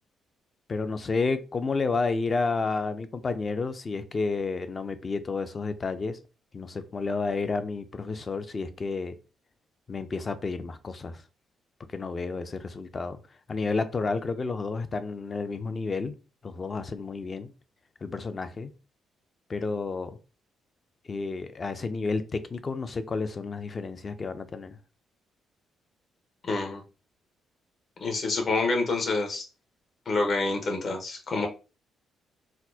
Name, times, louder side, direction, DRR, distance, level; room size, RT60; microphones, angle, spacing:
voice 1, 0.7-6.2 6.5-9.1 9.9-11.2 11.9-13.2 13.5-16.1 16.4-17.5 18.0-18.7 19.5-20.2 21.1-24.8, left 4 dB, 35° left, 0.4 m, -31 dB
voice 2, 26.4-26.8 28.0-29.4 30.1-31.5, left 3 dB, 50° left, 0.9 m, -27 dB
4.2 x 2.0 x 2.7 m
cardioid pair, 90°, 0 cm